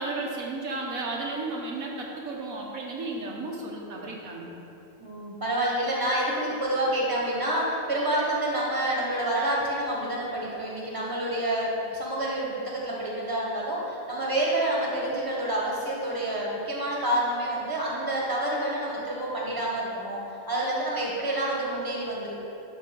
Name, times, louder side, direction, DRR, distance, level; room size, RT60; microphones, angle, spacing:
voice 1, 0.0-4.6, right 2 dB, 85° right, -2 dB, 1.5 m, -33 dB
voice 2, 5.0-20.2 20.5-22.3, right 1 dB, 15° right, -4 dB, 1.5 m, -28 dB
11.5 x 3.9 x 5.4 m, 2.8 s
omnidirectional pair, 1.4 m